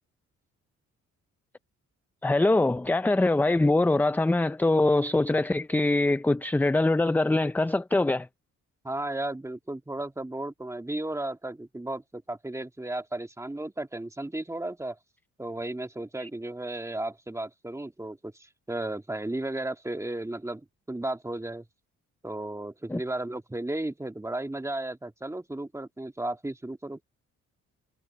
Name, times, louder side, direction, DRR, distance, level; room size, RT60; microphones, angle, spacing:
voice 1, 2.2-8.3 16.2-16.3 22.9-23.0, left 2 dB, 5° left, 0.5 m, -23 dB
voice 2, 8.8-15.0 15.4-21.7 22.2-27.0, right 2 dB, 10° right, 1.8 m, -34 dB
cardioid pair, 90°, 30 cm